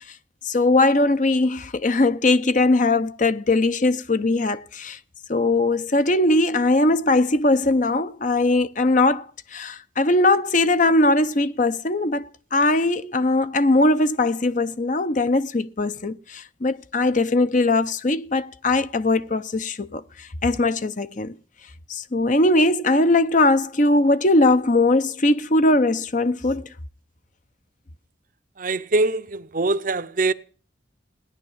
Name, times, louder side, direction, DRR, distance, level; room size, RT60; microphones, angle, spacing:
voice 1, 0.4-5.0 5.3-9.3 9.5-21.3 21.9-26.7, left 2 dB, 40° left, 0.7 m, -20 dB
voice 2, 28.6-30.3, right 2 dB, 45° right, 0.7 m, -23 dB
17.5 x 10.5 x 7.3 m
head